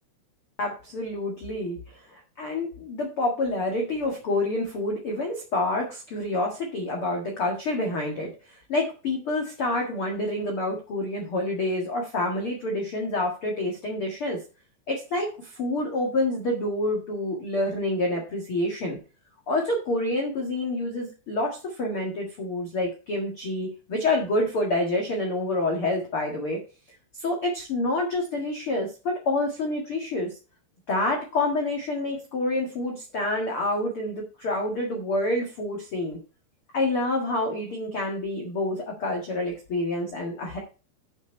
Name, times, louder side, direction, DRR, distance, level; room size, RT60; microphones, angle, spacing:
voice 1, 0.6-14.4 14.9-19.0 19.5-26.6 27.1-30.4 30.9-36.2 36.7-40.6, left 2 dB, 85° left, 1 dB, 1.2 m, -28 dB
8.9 x 6.5 x 4.5 m, 0.33 s
omnidirectional pair, 5.5 m